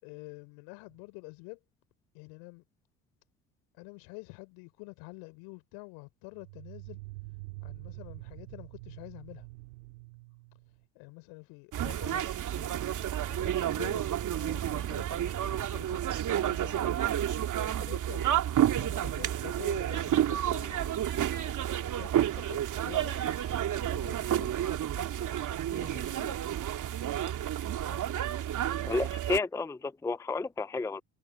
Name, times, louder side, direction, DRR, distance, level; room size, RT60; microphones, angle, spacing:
voice 1, 0.0-1.6 2.1-2.6 3.8-7.0 7.6-9.5 10.9-18.3 18.8-24.5 24.9-25.4 25.7-26.4 27.9-28.2, left 31 dB, 65° left, 4.1 m, -48 dB
sound 1, 0.9-1.0 6.3-10.9, right 25 dB, 70° right, 4.0 m, -46 dB
sound 2, 11.7-29.4, right 11 dB, 45° right, 2.7 m, -30 dB
voice 2, 28.9-31.0, left 3 dB, 5° left, 0.5 m, -31 dB
hypercardioid pair, 65°, 41 cm